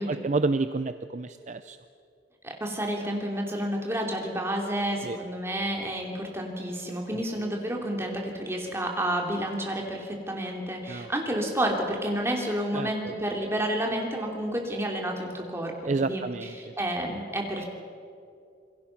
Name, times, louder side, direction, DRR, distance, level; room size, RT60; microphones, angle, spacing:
voice 1, 0.0-1.8 5.0-5.2 10.9-11.1 12.7-12.9 15.9-16.7, right 3 dB, 40° right, 11 dB, 0.5 m, -29 dB
voice 2, 2.4-16.2 16.6-17.6, right 1 dB, 15° right, 0 dB, 3.0 m, -30 dB
28.0 x 21.5 x 5.9 m, 2.4 s
head